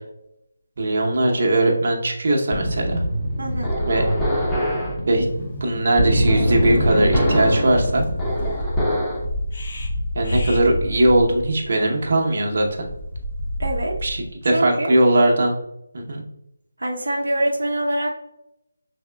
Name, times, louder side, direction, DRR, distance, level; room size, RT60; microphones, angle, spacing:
voice 1, 0.8-3.0 3.9-4.0 5.1-5.3 5.6-8.1 10.1-12.9 14.0-15.5 15.9-16.2, right 1 dB, 45° right, 0 dB, 0.9 m, -19 dB
sound 1, 2.5-9.3, equal, 5° left, 0.8 m, -23 dB
voice 2, 3.4-3.8 13.6-14.0 14.5-15.0 16.8-18.1, right 1 dB, 75° right, -1 dB, 0.7 m, -24 dB
sound 2, 5.5-5.6 5.9-6.1 6.6-6.8 7.2-14.3, left 1 dB, 45° left, 0.7 m, -29 dB
5.7 x 3.5 x 2.2 m, 0.83 s
figure-of-eight pair, 155°, 0 cm